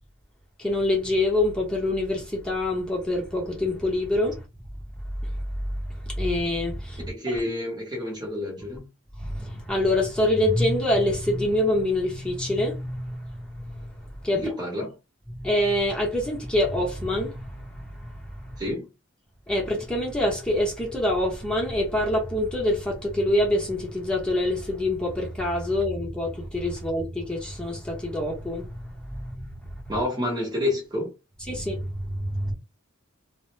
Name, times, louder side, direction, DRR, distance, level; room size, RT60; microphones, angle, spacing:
voice 1, 0.6-4.4 5.2-5.3 6.1-7.0 9.2-13.7 14.2-14.4 15.3-18.5 19.5-29.9 31.5-32.5, left 1 dB, 5° left, 0.8 m, -26 dB
voice 2, 7.1-8.9 14.3-15.0 18.6-18.9 29.9-31.1, left 1 dB, 20° right, 0.9 m, -29 dB
2.1 x 2.0 x 3.1 m
head